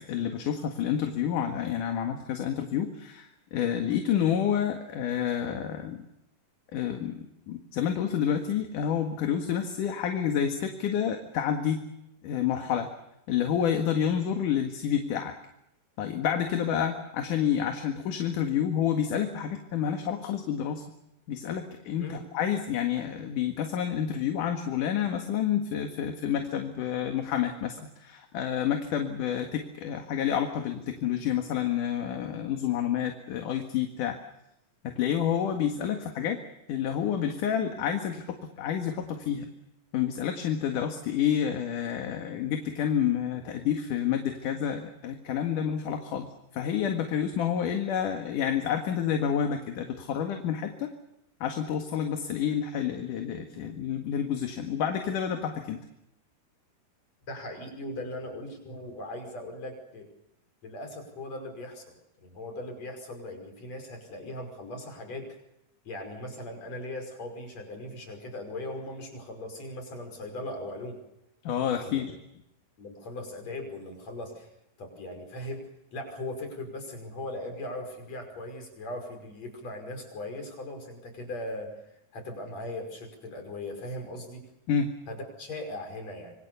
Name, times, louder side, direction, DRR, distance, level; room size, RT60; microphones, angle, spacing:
voice 1, 0.1-6.0 6.7-7.1 7.5-11.8 12.2-12.9 13.3-15.3 16.0-20.8 21.3-34.2 34.8-36.4 36.7-39.5 39.9-50.9 51.4-55.8 71.4-72.1 84.7-84.9, left 9 dB, 60° left, 5 dB, 3.1 m, -29 dB
voice 2, 57.3-60.1 60.6-61.8 62.2-65.4 65.8-71.0 71.6-72.0 72.8-74.5 74.8-81.7 82.1-84.4 85.1-86.3, left 1 dB, 45° left, 5 dB, 6.5 m, -39 dB
26.5 x 24.0 x 7.0 m, 0.84 s
omnidirectional pair, 4.4 m